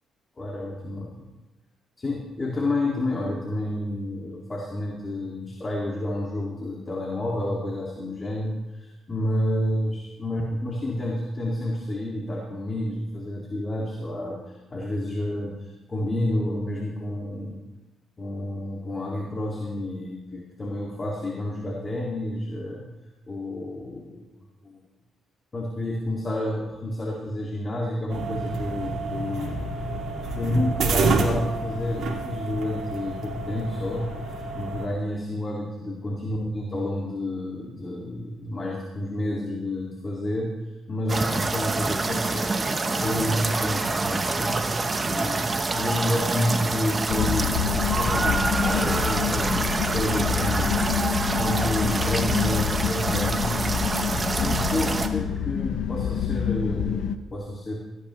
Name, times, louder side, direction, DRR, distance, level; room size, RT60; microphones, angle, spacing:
voice 1, 0.4-1.2 2.0-17.6 18.2-22.9 23.3-24.2 24.6-24.8 25.5-29.6 30.3-44.6 45.0-53.9 54.3-57.8, left 1 dB, 30° left, -2 dB, 2.3 m, -30 dB
sound 1, 28.1-34.9, right 3 dB, 65° right, 2.4 m, -28 dB
sound 2, 41.1-55.1, right 3 dB, 30° right, 1.1 m, -26 dB
sound 3, 47.1-57.2, left 8 dB, 75° left, 0.7 m, -27 dB
16.5 x 14.0 x 3.2 m, 1.1 s
cardioid pair, 90°, 0 cm